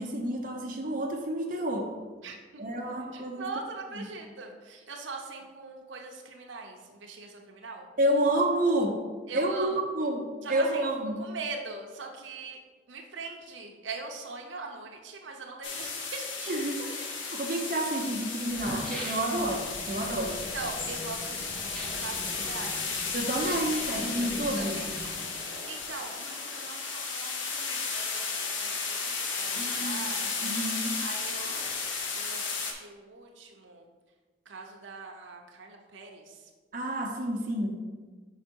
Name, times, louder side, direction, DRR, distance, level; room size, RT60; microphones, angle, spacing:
voice 1, 0.0-1.9 2.6-3.5 3.9-4.1 8.0-9.0 9.3-11.2 16.5-16.9 17.3-20.4 23.1-24.8 29.5-31.0 36.7-37.8, right 1 dB, 45° right, -1 dB, 0.8 m, -29 dB
voice 2, 2.2-2.6 3.1-7.9 9.3-9.8 10.4-10.9 11.2-12.6 12.9-16.5 16.9-17.3 20.3-23.2 23.7-24.3 24.6-24.9 25.7-30.5 31.0-31.6 32.2-33.8 34.5-36.3, right 3 dB, 85° right, 1 dB, 0.7 m, -42 dB
sound 1, 15.6-32.7, left 4 dB, 85° left, 0.9 m, -34 dB
sound 2, 18.1-18.2 18.4-19.7 21.6-22.1 23.3-23.8 24.7-25.5 25.8-25.9, equal, 5° left, 1.0 m, -42 dB
sound 3, 19.3-25.3, equal, 20° left, 0.6 m, -45 dB
5.4 x 4.9 x 4.5 m, 1.4 s
head